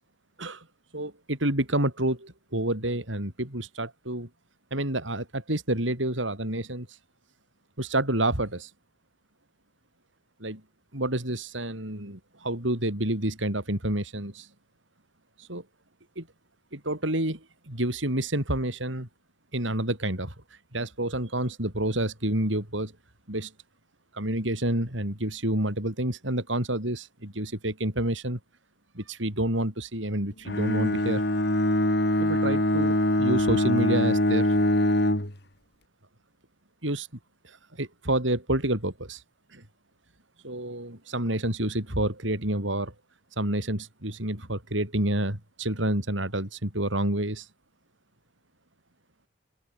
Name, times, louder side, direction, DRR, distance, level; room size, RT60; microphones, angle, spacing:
voice 1, 0.9-4.3 4.7-7.0 7.8-8.7 10.4-10.6 10.9-14.5 15.4-15.6 16.2-16.3 16.7-19.1 19.5-20.3 20.7-22.9 23.3-23.5 24.1-28.4 28.9-31.2 32.2-34.5 36.8-37.1 37.4-39.2 39.5-39.6 40.4-42.9 43.4-47.5, right 1 dB, 80° right, 6.7 m, -29 dB
Bowed string instrument, 30.5-35.4, left 1 dB, 55° left, 4.1 m, -23 dB
open air
head